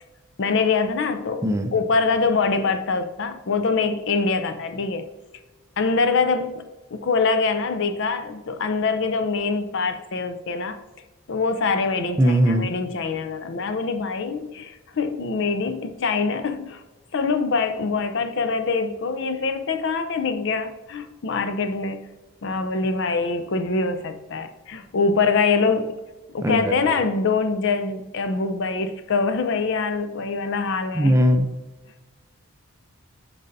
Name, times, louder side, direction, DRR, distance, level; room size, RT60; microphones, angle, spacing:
voice 1, 0.4-5.0 5.8-10.8 11.3-16.8 17.1-22.0 22.4-26.0 26.3-31.1, left 4 dB, 55° left, 9 dB, 0.5 m, -24 dB
voice 2, 1.4-1.7 12.2-12.7 26.4-27.0 30.9-31.5, equal, 15° right, 5 dB, 0.5 m, -19 dB
9.0 x 5.4 x 2.6 m, 1.2 s
head